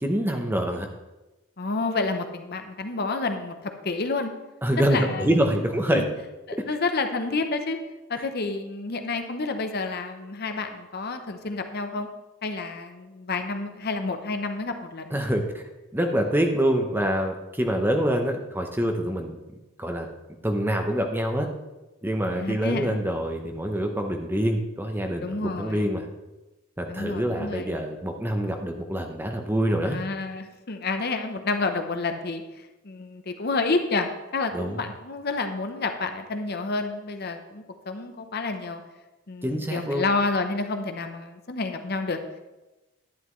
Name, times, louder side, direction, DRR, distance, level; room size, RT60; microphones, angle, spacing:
voice 1, 0.0-0.9 4.6-6.0 15.1-15.6 15.9-19.4 19.8-20.1 20.4-21.5 22.0-26.0 26.8-30.0 34.5-34.8 39.4-40.0, equal, 10° right, 3 dB, 0.7 m, -25 dB
voice 2, 1.6-4.3 4.9-5.3 5.9-6.0 6.5-7.8 8.1-12.1 12.4-15.2 22.3-23.0 25.2-25.9 26.9-27.8 29.9-32.4 32.8-38.8 39.3-42.2, left 3 dB, 45° left, 6 dB, 0.7 m, -29 dB
11.0 x 9.8 x 3.1 m, 1.0 s
head